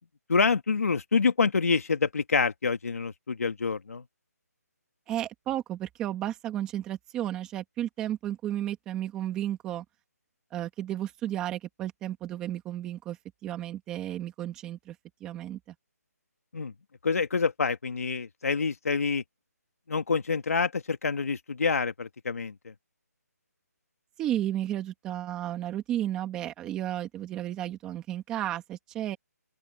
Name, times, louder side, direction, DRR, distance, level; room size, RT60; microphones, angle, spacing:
voice 1, 0.3-4.0 16.5-16.7 17.0-19.2 19.9-22.7, left 5 dB, 60° left, 2.1 m, -27 dB
voice 2, 5.1-9.8 10.5-15.0 15.2-15.6 24.2-29.2, right 12 dB, 10° right, 2.0 m, -33 dB
open air
hypercardioid pair, 175°, 9 cm